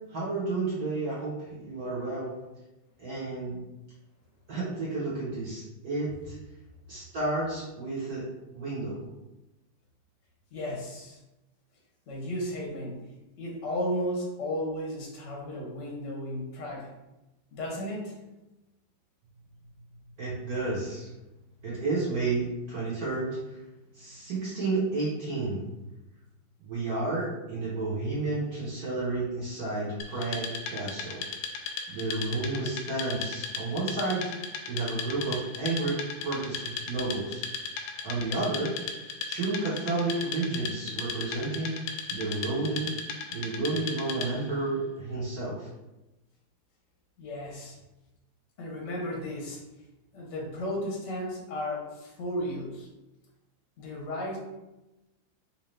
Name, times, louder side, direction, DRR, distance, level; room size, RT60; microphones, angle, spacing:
voice 1, 0.1-2.3 3.0-3.6 4.5-6.3 6.9-8.2 8.5-9.0 20.2-21.1 21.6-23.4 23.9-25.6 26.6-31.2 31.9-34.3 34.7-37.4 38.0-38.7 39.3-41.7 42.1-42.9 43.3-45.7, right 3 dB, 55° right, -9 dB, 1.4 m, -31 dB
voice 2, 10.5-11.2 12.1-13.1 13.4-16.9 17.5-18.1 47.2-47.8 48.6-49.6 50.1-52.9 53.8-54.4, equal, 50° left, -2 dB, 0.9 m, -34 dB
Wood, 30.0-44.5, left 5 dB, 90° left, 1.3 m, -37 dB
3.9 x 2.8 x 3.2 m, 1.0 s
omnidirectional pair, 2.1 m